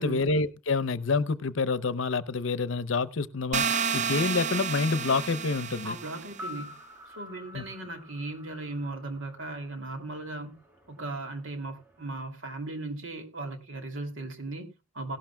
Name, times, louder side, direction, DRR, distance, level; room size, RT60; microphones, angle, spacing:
voice 1, 0.0-5.9 7.5-7.6, left 4 dB, 70° left, 0.7 m, -28 dB
sound 1, 3.5-6.4, right 6 dB, 35° right, 0.6 m, -30 dB
voice 2, 5.8-6.8 7.1-10.6 10.9-15.2, right 2 dB, 65° right, 2.7 m, -37 dB
sound 2, 6.2-10.4 10.7-10.8, left 1 dB, 10° right, 2.5 m, -47 dB
17.0 x 12.0 x 2.3 m
head